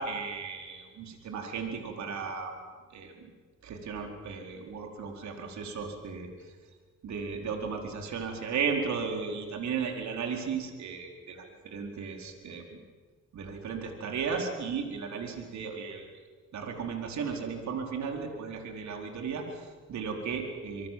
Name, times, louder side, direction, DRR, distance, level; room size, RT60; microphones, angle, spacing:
voice 1, 0.0-2.5 2.9-3.1 3.6-6.3 7.0-12.6 13.3-16.1 16.5-20.9, right 5 dB, 65° right, 3 dB, 4.5 m, -35 dB
26.5 x 23.0 x 7.7 m, 1.5 s
cardioid pair, 90°, 30 cm